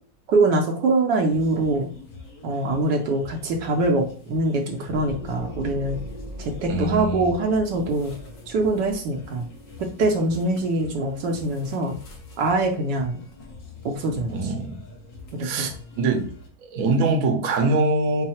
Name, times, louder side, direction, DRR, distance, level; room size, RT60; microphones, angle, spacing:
voice 1, 0.3-1.9 2.4-6.0 6.4-8.1 8.5-9.5 9.8-12.0 12.4-13.2 13.8-14.5 15.3-15.7, right 2 dB, 75° right, 1 dB, 1.2 m, -23 dB
sound 1, 1.3-16.5, left 3 dB, 50° left, 1.1 m, -44 dB
sound 2, 4.9-12.3, equal, 70° left, 1.4 m, -41 dB
voice 2, 6.7-7.3 14.3-14.8 15.4-16.3 16.6-18.3, right 2 dB, 60° right, 3 dB, 1.0 m, -23 dB
4.6 x 2.0 x 4.2 m, 0.43 s
omnidirectional pair, 2.0 m